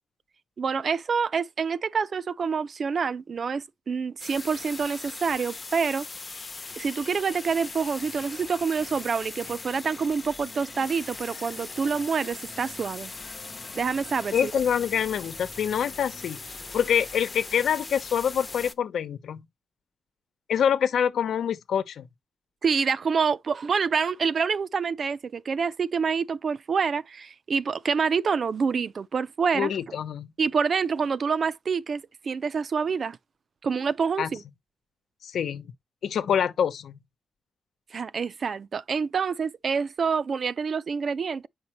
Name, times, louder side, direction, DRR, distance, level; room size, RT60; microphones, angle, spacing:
voice 1, 0.6-6.1 6.8-13.1 13.7-14.5 22.6-29.7 30.4-33.2 33.6-34.4 37.9-41.5, right 5 dB, 55° right, 0.5 m, -27 dB
sound 1, 4.2-18.7, left 3 dB, 30° left, 0.7 m, -40 dB
voice 2, 14.3-19.4 20.5-22.1 29.5-30.3 34.2-34.3 35.2-35.7 36.0-37.0, left 8 dB, 90° left, 1.0 m, -26 dB
8.6 x 5.5 x 3.0 m
wide cardioid pair, 115°, 0 cm